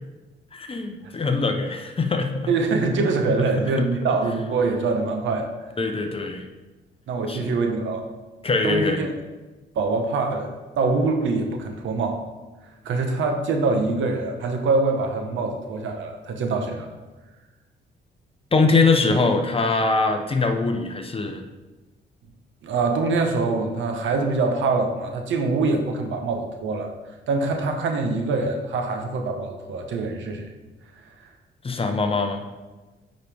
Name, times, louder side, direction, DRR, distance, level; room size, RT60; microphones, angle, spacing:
voice 1, 0.5-2.5 3.4-3.5 5.8-6.4 7.3-7.5 8.4-9.0 18.5-21.4 31.6-32.4, left 3 dB, 30° left, 5 dB, 0.9 m, -22 dB
voice 2, 2.5-5.5 7.1-8.0 8.6-9.1 9.7-12.2 12.8-16.9 22.6-26.9 27.3-30.5, right 3 dB, 75° right, 4 dB, 1.2 m, -24 dB
9.1 x 5.4 x 3.6 m, 1.2 s
cardioid pair, 90°, 20 cm